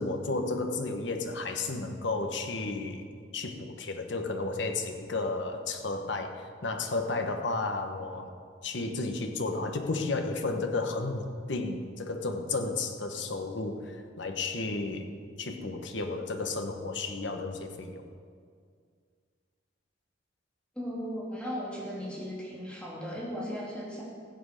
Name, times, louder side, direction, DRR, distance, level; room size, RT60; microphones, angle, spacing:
voice 1, 0.0-3.1 3.3-8.3 8.6-15.1 15.4-18.1, left 3 dB, 70° left, 5 dB, 1.2 m, -33 dB
voice 2, 20.7-24.0, equal, 5° left, -4 dB, 2.7 m, -36 dB
15.5 x 8.0 x 6.6 m, 2.1 s
head